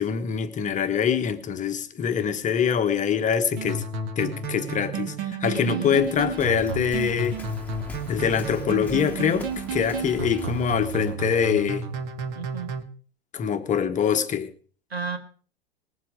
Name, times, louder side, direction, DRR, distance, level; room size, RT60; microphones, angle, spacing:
voice 1, 0.0-3.8 4.2-7.4 8.1-11.8 13.3-14.5, left 7 dB, 25° left, 1.2 m, -24 dB
sound 1, 3.5-12.8, right 4 dB, 45° right, 1.8 m, -32 dB
voice 2, 5.5-6.0 12.4-12.7 14.9-15.2, right 6 dB, 90° right, 2.0 m, -32 dB
Waves surf, 5.9-11.1, left 2 dB, 5° left, 1.7 m, -43 dB
20.0 x 7.5 x 5.0 m
hypercardioid pair, 95°, 30 cm